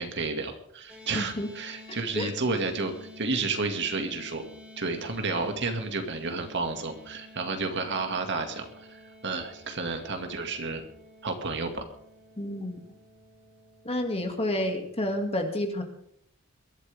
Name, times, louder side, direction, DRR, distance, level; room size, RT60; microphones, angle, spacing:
voice 1, 0.0-4.4 4.8-10.8 11.2-11.8, right 3 dB, 55° right, 5 dB, 2.2 m, -31 dB
sound 1, 0.9-15.3, left 1 dB, 5° right, 3.9 m, -51 dB
voice 2, 1.1-1.5 1.9-2.3 12.4-12.8 13.8-15.8, left 1 dB, 30° left, 4 dB, 2.3 m, -30 dB
23.0 x 12.5 x 3.6 m, 0.71 s
head